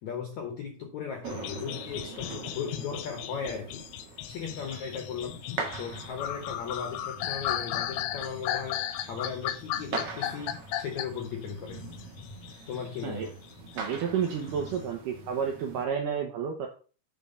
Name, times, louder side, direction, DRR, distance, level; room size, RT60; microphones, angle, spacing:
voice 1, 0.0-3.8 4.3-5.4 5.8-11.8 12.7-13.3, left 6 dB, 75° left, 5 dB, 1.6 m, -37 dB
sound 1, 1.2-15.9, right 3 dB, 60° right, 1.6 m, -42 dB
sound 2, 1.3-13.1 13.4-14.8, left 12 dB, 90° left, 3.0 m, -36 dB
voice 2, 13.8-16.7, right 7 dB, 75° right, 3 dB, 1.9 m, -31 dB
9.3 x 4.3 x 5.4 m, 0.38 s
omnidirectional pair, 4.9 m